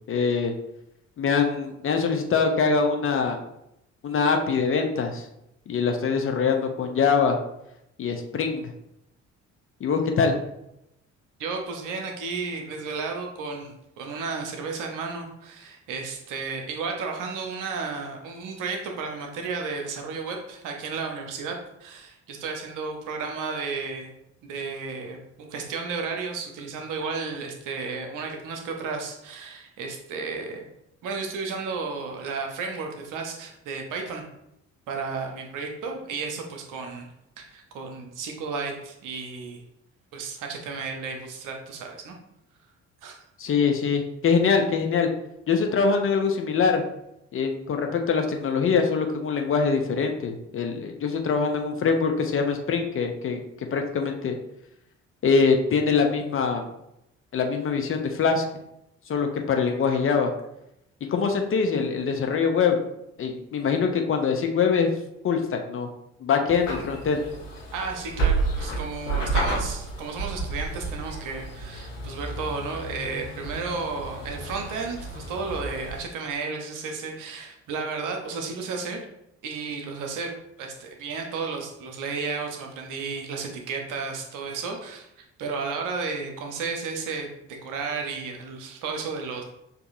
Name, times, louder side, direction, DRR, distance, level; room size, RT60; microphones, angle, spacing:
voice 1, 0.1-0.5 1.2-3.4 4.0-5.3 5.7-7.4 8.0-8.7 9.8-10.4 43.4-45.1 45.5-46.8 47.3-54.4 55.2-56.7 57.3-58.4 59.1-60.3 61.1-62.8 63.2-64.9 65.2-65.9 66.2-67.2, left 5 dB, 35° left, 4 dB, 0.6 m, -23 dB
voice 2, 11.4-24.1 24.4-30.7 31.0-34.2 34.9-37.1 37.4-39.6 40.1-42.2 43.0-43.2 67.7-79.0 79.4-89.4, right 4 dB, 50° right, 2 dB, 0.9 m, -33 dB
sound 1, 66.5-76.0, right 3 dB, 75° left, 1.0 m, -31 dB
6.6 x 2.7 x 2.6 m, 0.82 s
figure-of-eight pair, 45°, 39 cm